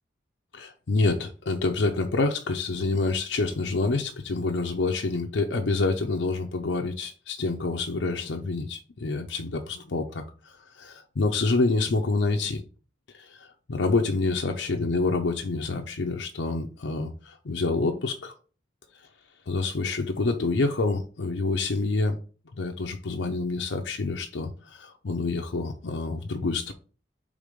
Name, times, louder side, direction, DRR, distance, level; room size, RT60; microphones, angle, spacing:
voice 1, 0.5-12.6 13.1-18.3 19.5-22.2 22.5-26.7, left 3 dB, 80° left, 0.6 m, -27 dB
4.9 x 3.6 x 5.2 m
head